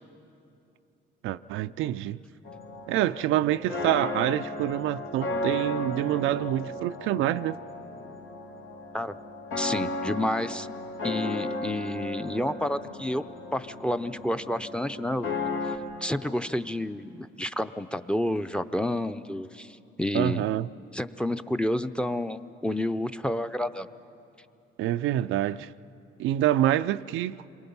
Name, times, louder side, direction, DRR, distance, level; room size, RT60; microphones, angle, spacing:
voice 1, 1.2-2.2 2.9-7.6 20.1-20.7 24.8-25.7 26.2-27.4, right 13 dB, 90° right, 0.4 m, -26 dB
sound 1, 2.4-15.8, left 2 dB, 90° left, 2.6 m, -35 dB
voice 2, 9.6-10.7 11.0-13.2 13.5-15.3 15.6-15.8 16.0-20.5 20.9-23.9, left 1 dB, 5° left, 0.6 m, -30 dB
28.0 x 23.5 x 5.5 m
cardioid pair, 90°, 20 cm